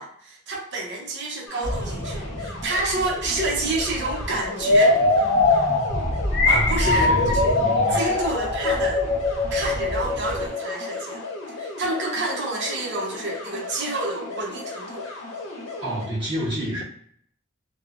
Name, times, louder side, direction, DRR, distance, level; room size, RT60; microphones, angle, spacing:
voice 1, 0.0-5.0 6.4-7.6 7.9-9.0 9.5-11.3 11.6-15.1, right 2 dB, 60° right, -1 dB, 0.7 m, -28 dB
sound 1, 1.5-16.1, left 3 dB, 80° left, 0.8 m, -36 dB
sound 2, 1.6-10.5, equal, 5° right, 0.9 m, -32 dB
sound 3, 4.6-11.3, left 2 dB, 55° left, 0.5 m, -22 dB
voice 2, 6.5-8.2 15.8-16.8, equal, 25° right, -10 dB, 1.3 m, -29 dB
3.0 x 2.0 x 2.5 m, 0.65 s
head